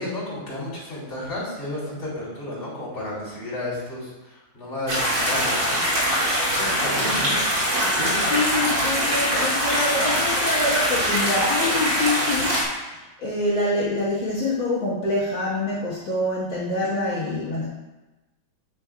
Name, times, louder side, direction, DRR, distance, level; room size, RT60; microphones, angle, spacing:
voice 1, 0.0-5.8 6.5-7.4 7.8-8.3, left 1 dB, 35° left, -7 dB, 3.3 m, -32 dB
sound 1, 4.9-12.6, equal, 60° right, 2.6 m, -23 dB
voice 2, 8.3-17.7, left 2 dB, 70° left, -9 dB, 2.2 m, -26 dB
8.7 x 8.4 x 2.3 m, 1.1 s
omnidirectional pair, 2.2 m